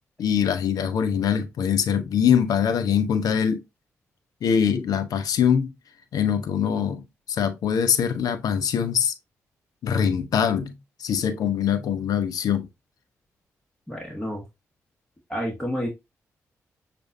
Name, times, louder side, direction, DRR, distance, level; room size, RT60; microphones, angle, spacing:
voice 1, 0.2-3.6 4.4-5.7 6.1-9.1 9.8-10.7 11.0-12.7, left 8 dB, 75° left, 0.7 m, -23 dB
voice 2, 13.9-14.4 15.3-15.9, equal, 10° left, 1.6 m, -29 dB
6.3 x 2.6 x 2.6 m
supercardioid pair, 45°, 6 cm